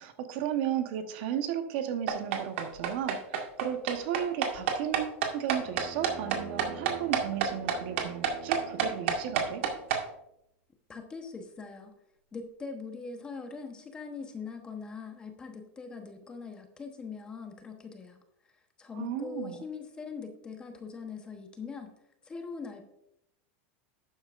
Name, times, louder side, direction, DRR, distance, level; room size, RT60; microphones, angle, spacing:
voice 1, 0.0-9.7 19.0-19.6, right 10 dB, 55° right, 8 dB, 1.1 m, -34 dB
sound 1, 2.1-10.0, right 7 dB, 75° right, 1.9 m, -28 dB
Bowed string instrument, 5.5-10.0, right 5 dB, 25° right, 2.0 m, -46 dB
voice 2, 10.9-11.9 12.3-18.2 18.8-21.9 22.2-22.8, left 5 dB, 15° left, 5 dB, 1.0 m, -42 dB
12.0 x 9.0 x 2.5 m, 0.80 s
supercardioid pair, 165°, 7 cm